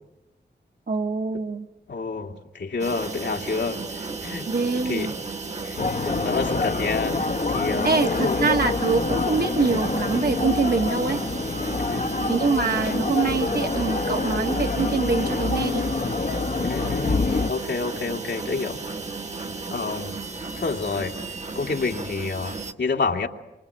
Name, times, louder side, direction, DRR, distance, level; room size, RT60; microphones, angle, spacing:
voice 1, 0.9-1.7 4.4-5.1 7.8-11.2 12.3-15.9, right 4 dB, 55° right, 5 dB, 1.5 m, -24 dB
voice 2, 1.9-3.8 4.2-5.1 5.6-5.8 6.2-8.4 11.8-12.1 16.6-18.8 19.7-20.2 20.6-21.1 21.5-23.3, left 4 dB, 75° left, 2 dB, 2.4 m, -29 dB
sound 1, 2.8-22.7, right 3 dB, 40° right, 1.5 m, -34 dB
sound 2, 5.8-17.5, left 3 dB, 50° left, 1.3 m, -26 dB
26.5 x 25.0 x 8.5 m, 0.98 s
wide cardioid pair, 110°, 18 cm